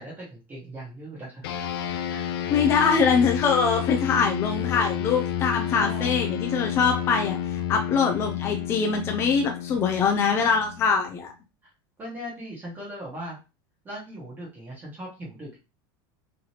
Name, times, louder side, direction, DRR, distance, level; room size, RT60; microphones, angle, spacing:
voice 1, 0.0-1.5 2.1-2.5 5.7-6.2 12.0-13.4 13.8-15.6, equal, 15° right, -5 dB, 1.1 m, -39 dB
sound 1, 1.4-11.2, left 9 dB, 80° left, 0.5 m, -30 dB
voice 2, 2.5-11.3, left 5 dB, 20° left, 3 dB, 0.4 m, -23 dB
3.9 x 3.2 x 2.8 m, 0.30 s
supercardioid pair, 170°, 12 cm